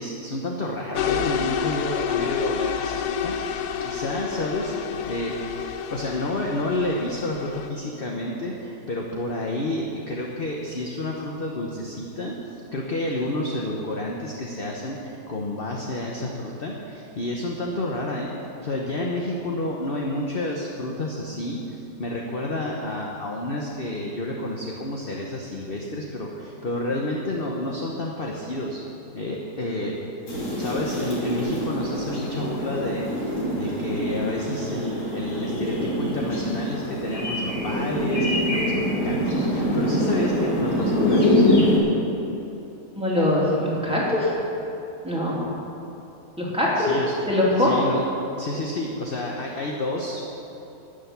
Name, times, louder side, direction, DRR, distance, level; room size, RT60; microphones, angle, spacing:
voice 1, 0.0-4.7 5.1-5.4 5.9-12.4 12.7-18.3 18.6-28.8 29.1-30.0 30.6-41.4 46.8-47.1 47.6-48.0 48.4-50.3, left 1 dB, 40° left, -1 dB, 1.1 m, -30 dB
sound 1, 1.0-7.7, left 8 dB, 80° left, 1.2 m, -29 dB
sound 2, 30.3-41.8, left 1 dB, 65° left, 3.7 m, -24 dB
voice 2, 42.9-44.3 45.0-45.5 46.4-46.9 47.3-47.8, left 1 dB, 5° right, -7 dB, 3.0 m, -22 dB
12.5 x 6.7 x 9.5 m, 3.0 s
omnidirectional pair, 1.7 m